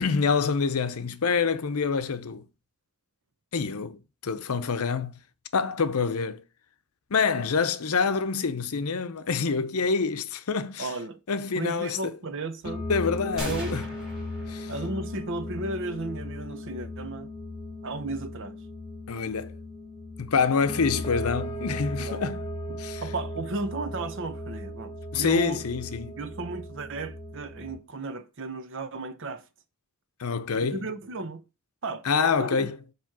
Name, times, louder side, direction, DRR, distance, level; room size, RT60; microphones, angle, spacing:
voice 1, 0.0-2.4 3.5-5.2 5.5-6.4 7.1-10.9 11.3-12.1 12.9-13.8 14.5-14.7 19.1-19.6 20.2-22.4 22.8-23.0 25.1-26.2 30.2-30.8 32.0-32.8, left 5 dB, 75° left, 0.7 m, -26 dB
voice 2, 10.8-11.2 11.6-12.9 13.4-13.8 14.7-17.3 17.8-18.6 22.0-22.3 23.0-25.6 26.2-29.4 30.7-31.4 31.8-32.0 32.4-32.7, right 3 dB, 60° right, 0.7 m, -34 dB
sound 1, 12.6-27.8, left 1 dB, 25° left, 1.4 m, -37 dB
sound 2, 13.4-15.3, equal, 5° right, 3.4 m, -39 dB
7.5 x 3.1 x 5.9 m
head